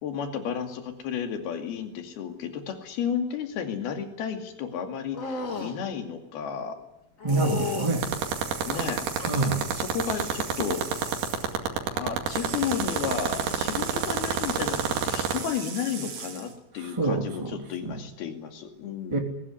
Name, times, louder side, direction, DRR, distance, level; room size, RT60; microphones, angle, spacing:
voice 1, 0.0-6.8 8.7-9.1 9.7-11.2 12.0-19.2, left 7 dB, 70° left, 5 dB, 4.3 m, -33 dB
sound 1, 5.1-5.8 7.2-8.0 8.7-9.5 10.0-10.5 10.8-11.3 12.8-13.0, left 4 dB, 40° left, 1.1 m, -35 dB
voice 2, 7.2-8.1 9.3-9.6 17.0-17.5 17.8-18.0 19.1-19.2, right 3 dB, 10° right, 1 dB, 2.3 m, -26 dB
sound 2, 7.3-11.5 12.3-16.6, right 6 dB, 60° right, 4.6 m, -39 dB
sound 3, 7.9-15.4, right 8 dB, 90° right, 4.3 m, -25 dB
21.5 x 19.0 x 9.9 m, 0.86 s
omnidirectional pair, 4.6 m